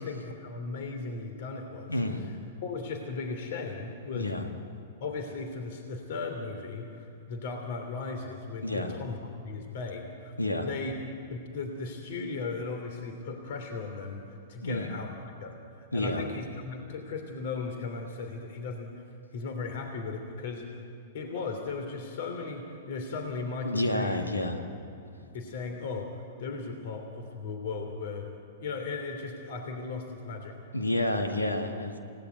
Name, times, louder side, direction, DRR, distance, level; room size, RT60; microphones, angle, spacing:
voice 1, 0.0-4.3 5.0-9.2 9.4-10.3 10.6-10.9 11.3-15.1 15.4-19.0 19.3-20.8 21.1-24.2 25.3-28.3 28.6-30.5, left 4 dB, 55° left, 5 dB, 3.1 m, -37 dB
voice 2, 1.9-2.2 4.1-4.5 8.6-8.9 10.4-10.7 14.6-14.9 15.9-16.2 23.6-24.6 30.7-32.0, left 1 dB, 90° left, 4 dB, 2.0 m, -29 dB
29.0 x 18.0 x 9.4 m, 2.5 s
figure-of-eight pair, 105°, 0 cm